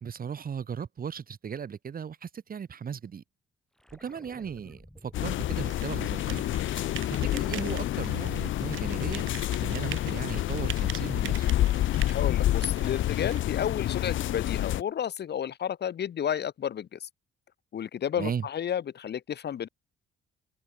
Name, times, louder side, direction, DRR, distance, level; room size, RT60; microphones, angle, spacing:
voice 1, 0.0-3.2 3.9-6.5 7.2-9.3 9.6-11.5 18.1-18.5, right 7 dB, 45° right, 2.4 m, -37 dB
sound 1, 3.8-9.6 10.0-12.5 14.9-15.0, equal, 5° left, 4.3 m, -53 dB
sound 2, 5.1-14.8, left 14 dB, 75° left, 1.1 m, -28 dB
sound 3, 5.6-13.4, right 14 dB, 75° right, 1.0 m, -43 dB
voice 2, 12.1-17.1 17.7-19.7, left 9 dB, 55° left, 2.0 m, -32 dB
cardioid pair, 90°, 20 cm